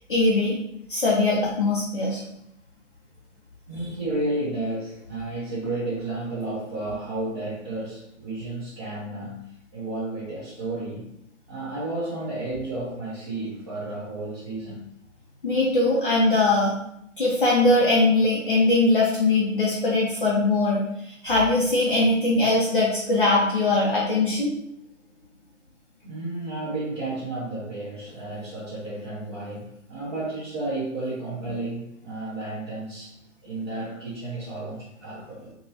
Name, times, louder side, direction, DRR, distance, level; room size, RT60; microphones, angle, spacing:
voice 1, 0.1-0.5 0.9-2.2 15.4-16.8 17.2-20.8 21.1-24.5, left 2 dB, 40° left, -5 dB, 0.7 m, -21 dB
voice 2, 3.7-11.1 11.5-14.9 26.0-33.1 33.4-35.5, right 2 dB, 25° right, -11 dB, 0.9 m, -32 dB
4.1 x 2.3 x 2.8 m, 0.76 s
figure-of-eight pair, 145°, 39 cm